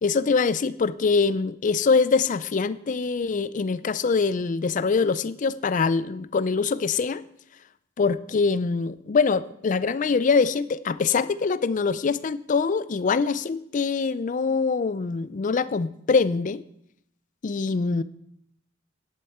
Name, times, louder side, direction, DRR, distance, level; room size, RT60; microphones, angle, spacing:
voice 1, 0.0-7.2 8.0-16.6 17.4-18.0, left 4 dB, 40° left, 16 dB, 0.4 m, -24 dB
11.0 x 8.6 x 4.3 m, 0.74 s
head